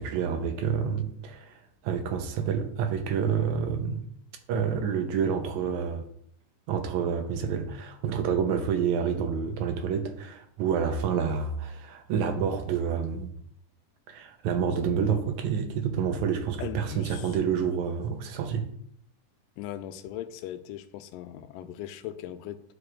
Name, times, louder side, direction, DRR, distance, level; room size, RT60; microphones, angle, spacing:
voice 1, 0.0-1.6 1.8-4.0 4.5-6.0 6.7-13.3 14.1-18.7, right 7 dB, 75° right, 1.9 m, -28 dB
voice 2, 16.6-17.4 19.6-22.6, left 11 dB, 85° left, 2.1 m, -39 dB
12.5 x 4.8 x 2.4 m
omnidirectional pair, 3.9 m